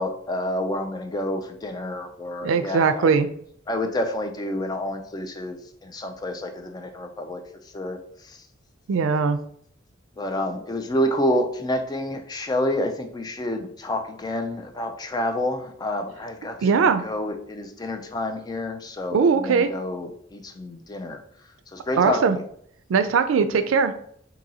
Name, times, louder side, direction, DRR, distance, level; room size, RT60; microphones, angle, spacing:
voice 1, 0.0-3.1 3.7-7.4 7.7-8.4 10.2-21.2 21.7-22.4, left 1 dB, 20° left, 6 dB, 0.3 m, -29 dB
voice 2, 2.4-3.3 8.9-9.4 16.6-17.0 19.1-19.7 22.0-22.4 22.9-24.0, right 5 dB, 90° right, 11 dB, 0.4 m, -20 dB
2.7 x 2.7 x 4.0 m, 0.64 s
head